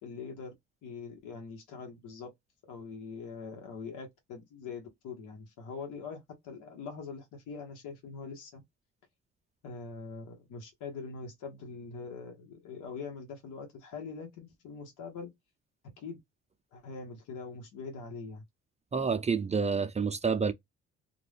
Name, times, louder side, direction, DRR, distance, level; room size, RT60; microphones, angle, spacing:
voice 1, 0.0-0.5 0.8-2.3 2.7-8.6 9.6-15.3 16.0-16.2 16.7-18.4, left 5 dB, 85° left, 1.0 m, -43 dB
voice 2, 18.9-20.5, right 5 dB, 25° right, 0.4 m, -28 dB
2.4 x 2.2 x 3.3 m
cardioid pair, 90°, 30 cm